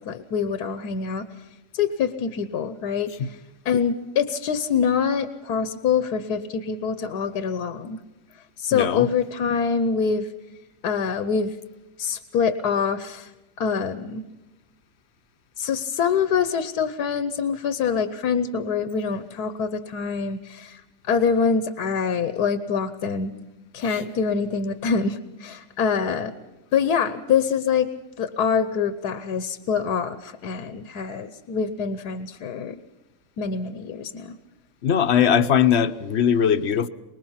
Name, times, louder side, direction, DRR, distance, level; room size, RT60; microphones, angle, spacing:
voice 1, 0.1-1.3 1.7-3.4 3.6-8.0 8.6-10.3 10.8-11.6 12.0-13.3 13.6-14.2 15.6-20.8 21.1-23.3 23.7-26.3 26.7-27.9 28.2-32.8 33.4-34.4, left 6 dB, 80° left, 11 dB, 1.5 m, -25 dB
voice 2, 8.7-9.1 23.9-24.0 34.8-36.9, left 8 dB, 50° left, 12 dB, 1.0 m, -20 dB
24.5 x 20.5 x 5.7 m, 1.1 s
omnidirectional pair, 1.7 m